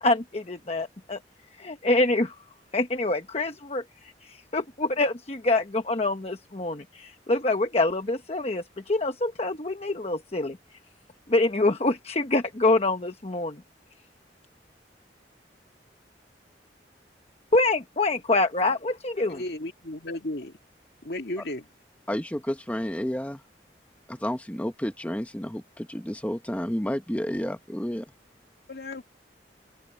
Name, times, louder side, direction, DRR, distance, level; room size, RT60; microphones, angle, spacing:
voice 1, 0.0-1.2 1.6-2.4 2.7-10.6 11.3-13.6 17.5-19.4, left 2 dB, 35° left, 1.0 m, -26 dB
voice 2, 19.3-20.5 21.0-21.7 28.7-29.0, left 1 dB, 65° left, 2.1 m, -34 dB
voice 3, 22.1-23.4 24.1-28.1, equal, 10° left, 1.0 m, -31 dB
head